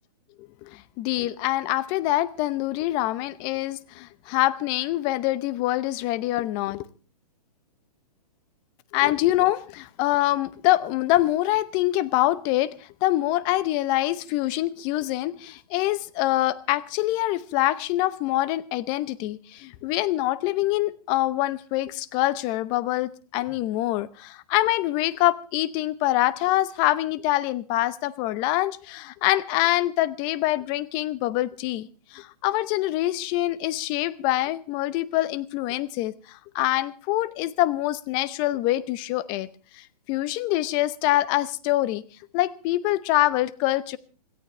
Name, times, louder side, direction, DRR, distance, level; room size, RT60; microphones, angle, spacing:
voice 1, 0.6-6.9 8.9-12.7 13.0-39.5 39.8-42.0 42.3-44.0, left 16 dB, 20° left, 0.7 m, -25 dB
26.5 x 13.5 x 3.3 m
hypercardioid pair, 155°, 21 cm